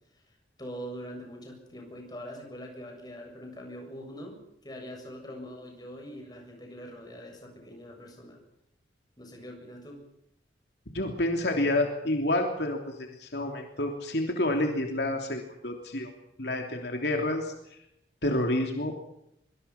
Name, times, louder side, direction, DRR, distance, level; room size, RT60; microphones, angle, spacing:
voice 1, 0.6-4.4 4.6-8.4 9.2-10.0, equal, 20° left, 2 dB, 7.4 m, -43 dB
voice 2, 10.9-16.1 16.4-17.5 18.2-18.9, left 1 dB, 65° left, 3 dB, 3.1 m, -29 dB
24.5 x 24.0 x 5.9 m, 0.77 s
head